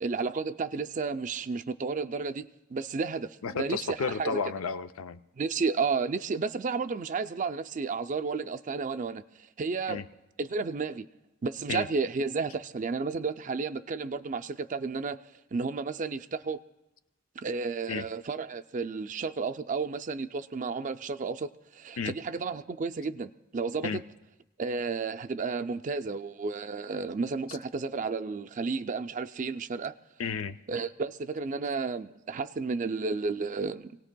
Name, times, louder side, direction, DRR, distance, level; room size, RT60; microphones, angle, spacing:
voice 1, 0.0-4.4 5.4-9.2 9.6-10.0 10.4-11.1 11.4-15.2 15.5-16.6 17.4-24.0 24.6-30.0 30.7-34.0, right 4 dB, 35° right, 9 dB, 0.4 m, -32 dB
voice 2, 3.4-5.2 9.9-10.0 11.7-11.9 17.9-18.1 22.0-22.1 23.8-24.0 30.2-30.6, left 5 dB, 80° left, 11 dB, 0.5 m, -32 dB
26.5 x 18.0 x 2.2 m, 0.95 s
head